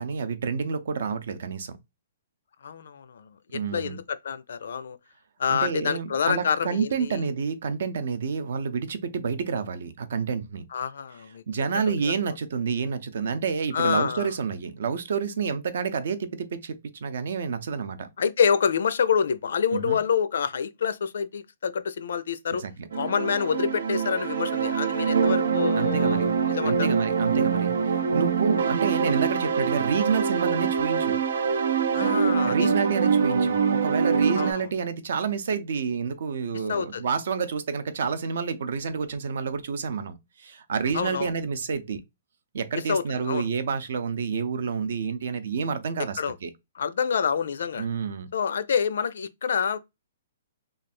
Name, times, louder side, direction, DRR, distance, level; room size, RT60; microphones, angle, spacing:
voice 1, 0.0-1.8 3.5-4.0 5.5-10.6 11.5-18.1 19.7-20.0 22.6-22.9 25.7-26.3 26.6-31.2 32.4-42.0 42.5-46.5 47.8-48.3, right 6 dB, 50° right, 0.6 m, -29 dB
voice 2, 2.6-5.0 5.4-7.2 10.7-11.4 11.7-12.1 13.7-14.3 18.2-22.6 22.9-26.9 31.9-32.7 34.4-34.7 36.7-37.1 40.9-41.3 42.7-43.5 46.2-46.4 46.8-47.9 48.3-49.8, left 7 dB, 60° left, 0.4 m, -27 dB
sound 1, 22.9-34.5, right 6 dB, 90° right, 0.7 m, -24 dB
3.2 x 2.3 x 4.3 m
hypercardioid pair, 180°, 0 cm